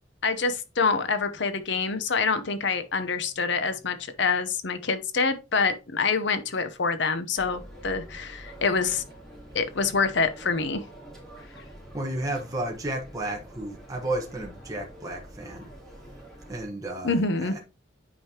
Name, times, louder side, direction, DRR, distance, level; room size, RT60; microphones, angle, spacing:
voice 1, 0.2-9.0 9.5-10.8 17.0-17.6, left 4 dB, 65° left, 0.8 m, -26 dB
sound 1, 7.3-16.7, right 1 dB, 5° left, 3.2 m, -46 dB
voice 2, 11.9-15.7 16.5-17.6, right 1 dB, 20° right, 1.2 m, -33 dB
9.0 x 5.2 x 2.9 m
head